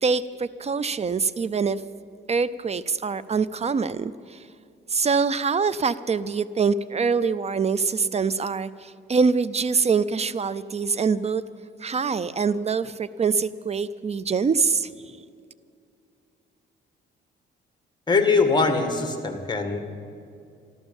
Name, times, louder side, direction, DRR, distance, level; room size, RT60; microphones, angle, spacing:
voice 1, 0.0-1.8 2.3-4.5 4.9-11.4 11.8-15.2, right 5 dB, 35° right, 17 dB, 0.5 m, -24 dB
voice 2, 18.1-19.8, left 4 dB, 20° left, 6 dB, 1.9 m, -22 dB
13.5 x 13.5 x 7.1 m, 2.4 s
cardioid pair, 90°, 20 cm